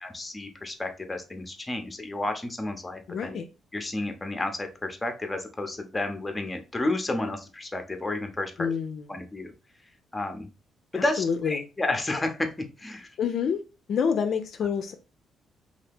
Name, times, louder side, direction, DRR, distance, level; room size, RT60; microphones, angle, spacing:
voice 1, 0.0-3.4 3.7-8.7 9.1-9.5 10.1-10.5 10.9-12.5 12.8-13.1, left 2 dB, 15° left, 0.6 m, -31 dB
voice 2, 3.1-3.5 8.6-9.1 10.9-11.7 13.2-13.6 13.9-14.9, left 6 dB, 65° left, 0.4 m, -27 dB
2.8 x 2.4 x 3.4 m
cardioid pair, 90°, 0 cm